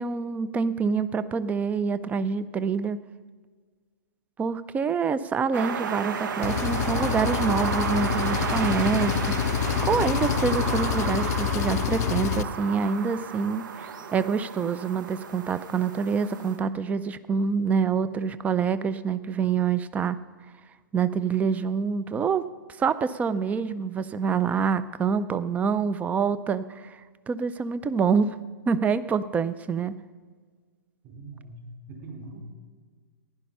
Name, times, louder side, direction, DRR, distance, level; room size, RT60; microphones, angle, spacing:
voice 1, 0.0-3.0 4.4-9.2 9.8-20.2 20.9-22.5 22.8-27.0 27.3-28.4 28.7-29.9, right 5 dB, 15° right, 16 dB, 0.4 m, -26 dB
sound 1, 5.5-16.6, right 6 dB, 70° right, 1.0 m, -32 dB
Engine, 6.4-12.4, left 10 dB, 50° left, 0.5 m, -27 dB
voice 2, 31.0-32.5, right 2 dB, 40° right, 1 dB, 4.2 m, -42 dB
15.5 x 11.0 x 5.5 m, 1.5 s
hypercardioid pair, 130°, 11 cm